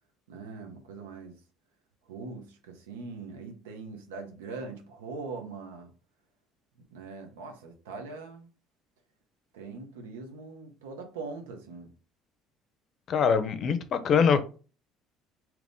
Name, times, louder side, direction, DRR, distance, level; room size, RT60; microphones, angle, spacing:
voice 1, 0.3-1.4 2.1-5.9 6.9-8.5 9.5-11.9, right 4 dB, 85° right, 4 dB, 0.7 m, -41 dB
voice 2, 13.1-14.4, left 6 dB, 50° left, 11 dB, 0.5 m, -23 dB
2.9 x 2.5 x 3.5 m, 0.36 s
hypercardioid pair, 65°, 0 cm